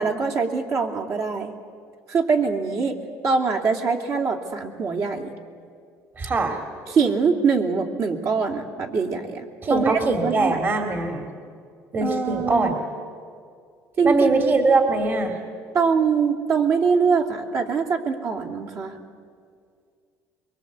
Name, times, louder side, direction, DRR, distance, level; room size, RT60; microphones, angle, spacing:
voice 1, 0.0-1.5 2.1-3.0 3.2-5.3 6.9-10.6 12.0-12.8 14.0-14.3 15.7-19.0, right 5 dB, 55° right, 2 dB, 2.8 m, -23 dB
voice 2, 6.2-6.6 9.6-11.3 11.9-12.7 14.0-15.3, right 3 dB, 35° right, 5 dB, 2.4 m, -22 dB
24.0 x 23.0 x 8.2 m, 2.2 s
cardioid pair, 115°, 6 cm